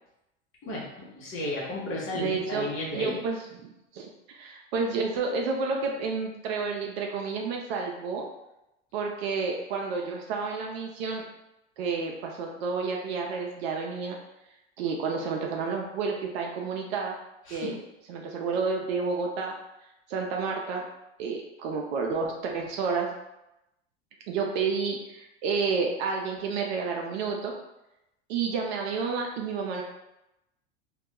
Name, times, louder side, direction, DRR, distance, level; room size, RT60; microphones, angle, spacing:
voice 1, 0.6-3.2 17.5-17.7, left 1 dB, 35° left, -5 dB, 0.8 m, -33 dB
voice 2, 2.1-3.4 3.9-8.3 8.9-11.2 11.8-14.2 14.8-17.2 17.5-17.8 18.1-19.5 20.1-20.8 21.2-23.1 24.3-27.5 28.3-29.8, right 4 dB, 60° right, 1 dB, 0.5 m, -30 dB
2.2 x 2.1 x 2.8 m, 0.90 s
hypercardioid pair, 100°, 35 cm